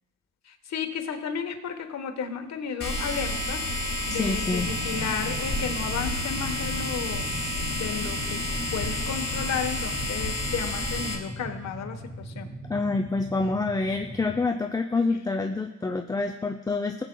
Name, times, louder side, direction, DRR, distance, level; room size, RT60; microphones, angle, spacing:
voice 1, 0.4-3.6 4.1-7.3 7.7-8.4 8.7-12.5, left 7 dB, 60° left, 6 dB, 1.2 m, -33 dB
sound 1, 2.8-11.1, left 1 dB, 35° left, 2.4 m, -30 dB
voice 2, 4.1-4.7 12.7-17.0, left 3 dB, 10° left, 3 dB, 0.5 m, -27 dB
sound 2, 4.6-14.5, equal, 10° right, 1.8 m, -40 dB
18.0 x 8.1 x 2.3 m, 1.1 s
cardioid pair, 90°, 30 cm